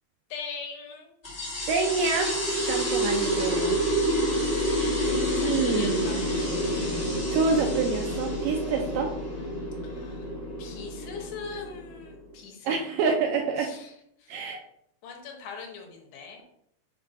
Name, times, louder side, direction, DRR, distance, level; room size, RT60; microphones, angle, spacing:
voice 1, 0.3-1.1 5.1-6.4 8.5-8.6 9.8-10.3 10.6-12.7 13.6-13.9 14.2-14.4 15.0-16.4, left 5 dB, 80° left, 1 dB, 2.9 m, -41 dB
sound 1, 1.2-12.3, equal, 35° left, 0.8 m, -28 dB
voice 2, 1.7-2.3 2.6-3.8 4.2-6.0 7.3-9.1 12.7-13.7 14.3-14.6, right 4 dB, 80° right, 2 dB, 2.0 m, -27 dB
7.2 x 2.5 x 5.1 m, 0.74 s
omnidirectional pair, 4.4 m